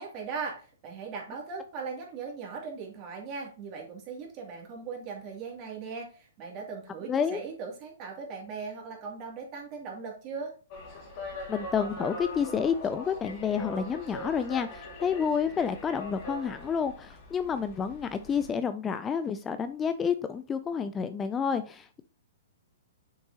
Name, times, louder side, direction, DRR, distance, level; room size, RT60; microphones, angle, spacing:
voice 1, 0.0-10.5, right 5 dB, 35° right, -1 dB, 2.6 m, -39 dB
voice 2, 7.1-7.4 11.5-22.0, left 7 dB, 20° left, 11 dB, 0.4 m, -29 dB
sound 1, 10.7-18.5, left 1 dB, 40° left, 2.3 m, -41 dB
6.6 x 5.3 x 2.9 m, 0.38 s
hypercardioid pair, 120°, 0 cm